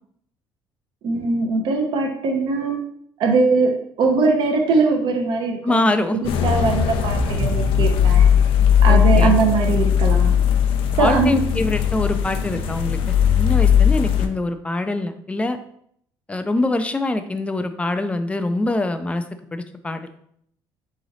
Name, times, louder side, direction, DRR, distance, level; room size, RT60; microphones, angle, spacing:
voice 1, 1.0-2.8 3.2-3.7 4.0-5.9 6.2-8.3 8.8-10.4 11.0-11.4, right 4 dB, 65° right, 2 dB, 0.8 m, -20 dB
voice 2, 5.6-6.2 8.9-9.3 11.0-13.0 13.4-15.6 16.3-19.2 19.5-20.1, left 2 dB, 15° left, 9 dB, 0.4 m, -24 dB
sound 1, 6.2-14.3, left 8 dB, 80° left, 0.5 m, -18 dB
3.8 x 3.1 x 4.0 m, 0.68 s
cardioid pair, 110°, 9 cm